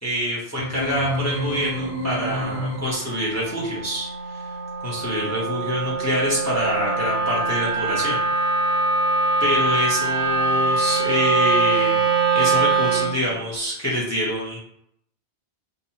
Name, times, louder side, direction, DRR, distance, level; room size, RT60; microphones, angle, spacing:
voice 1, 0.0-4.5 4.8-8.2 8.6-8.7 9.4-14.6, equal, 20° left, -5 dB, 0.6 m, -26 dB
sound 1, 0.6-3.2, right 1 dB, 65° left, 0.8 m, -29 dB
Wind instrument woodwind instrument, 1.6-13.2, right 3 dB, 80° right, 0.9 m, -23 dB
2.7 x 2.2 x 2.8 m, 0.70 s
omnidirectional pair, 1.1 m